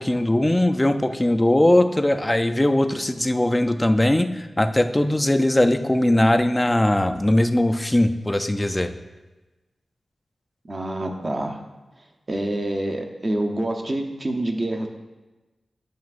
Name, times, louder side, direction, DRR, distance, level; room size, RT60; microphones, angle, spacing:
voice 1, 0.0-8.9, left 1 dB, 15° left, 8 dB, 0.3 m, -20 dB
voice 2, 10.7-11.6 12.0-14.9, right 1 dB, 35° right, 3 dB, 0.7 m, -27 dB
9.2 x 5.9 x 2.4 m, 1.1 s
wide cardioid pair, 120°, 0 cm